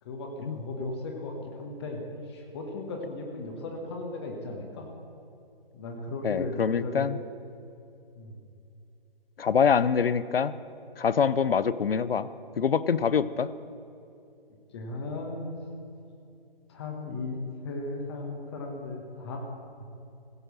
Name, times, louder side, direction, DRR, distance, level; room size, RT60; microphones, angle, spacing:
voice 1, 0.0-4.9 5.7-7.1 8.1-8.4 14.7-15.6 16.7-19.4 19.8-19.9, left 2 dB, 25° left, 1 dB, 1.3 m, -36 dB
voice 2, 6.2-7.2 9.4-10.5 11.0-12.3 12.6-13.5, left 6 dB, 70° left, 16 dB, 0.6 m, -25 dB
16.0 x 6.5 x 6.2 m, 2.6 s
figure-of-eight pair, 140°, 30 cm